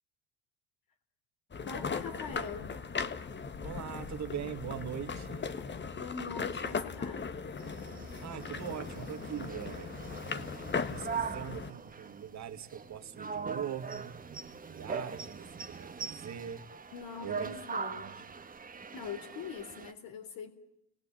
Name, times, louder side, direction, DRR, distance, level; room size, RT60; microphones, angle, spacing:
sound 1, 1.5-11.7, left 5 dB, 25° left, 1.5 m, -38 dB
voice 1, 1.7-2.7 6.0-7.3 16.9-18.1 18.7-20.5, left 6 dB, 55° left, 3.7 m, -42 dB
voice 2, 3.6-5.5 8.2-9.9 10.9-14.2 14.6-16.6 17.2-17.5 17.9-18.2, right 9 dB, 45° right, 2.2 m, -41 dB
sound 2, 7.6-19.9, right 5 dB, 20° right, 1.6 m, -42 dB
29.0 x 20.5 x 9.0 m
supercardioid pair, 105°, 40 cm